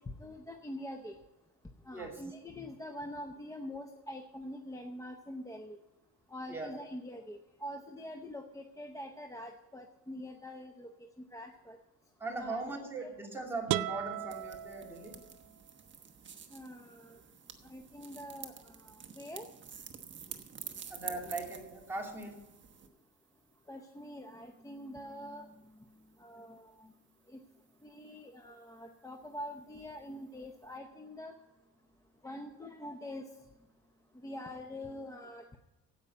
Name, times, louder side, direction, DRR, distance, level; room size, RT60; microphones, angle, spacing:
voice 1, 0.1-1.1 1.8-5.8 6.3-10.9 11.3-11.8 12.3-12.6 16.5-17.2 17.6-19.5 23.7-25.5 26.2-26.9 27.3-27.4 27.8-31.3 32.2-33.3 34.1-35.6, left 1 dB, 10° left, 4 dB, 0.7 m, -45 dB
voice 2, 1.9-2.6 6.5-6.8 12.2-15.2 20.9-22.4, right 3 dB, 5° right, -2 dB, 2.8 m, -40 dB
sound 1, 13.7-15.6, right 14 dB, 70° right, 0.5 m, -36 dB
sound 2, 14.3-22.9, right 7 dB, 35° right, 1.1 m, -49 dB
16.0 x 5.6 x 8.1 m, 1.0 s
cardioid pair, 145°, 34 cm